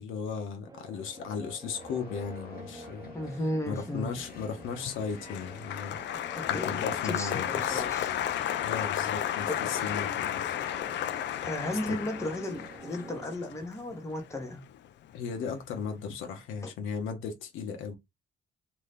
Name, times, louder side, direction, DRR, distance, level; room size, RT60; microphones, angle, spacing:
voice 1, 0.0-3.1 3.7-7.9 8.6-10.6 11.9-12.0 15.1-18.0, left 6 dB, 85° left, 0.8 m, -36 dB
sound 1, 0.7-13.4, right 3 dB, 20° right, 0.5 m, -50 dB
sound 2, 1.7-12.8, left 3 dB, 50° left, 0.9 m, -48 dB
voice 2, 3.1-4.2 6.3-8.1 9.5-9.8 11.4-14.7 16.6-16.7, left 1 dB, 15° left, 0.8 m, -35 dB
Applause, 4.7-15.1 15.4-16.0, left 11 dB, 65° left, 0.4 m, -33 dB
2.7 x 2.3 x 3.4 m
cardioid pair, 90°, 20 cm